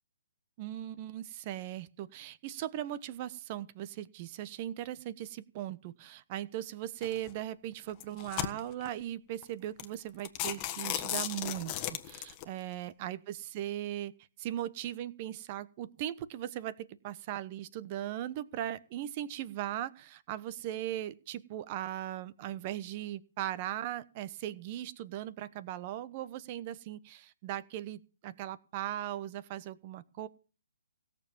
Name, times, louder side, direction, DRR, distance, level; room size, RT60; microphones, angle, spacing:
voice 1, 0.6-11.7 12.1-14.1 14.4-30.3, right 12 dB, 35° right, 16 dB, 1.0 m, -38 dB
sound 1, 7.0-7.3 7.9-8.9 9.4-9.5 9.8-9.9 10.2-12.4, left 13 dB, 25° left, 1.4 m, -35 dB
17.0 x 7.1 x 7.2 m, 0.37 s
figure-of-eight pair, 135°, 0 cm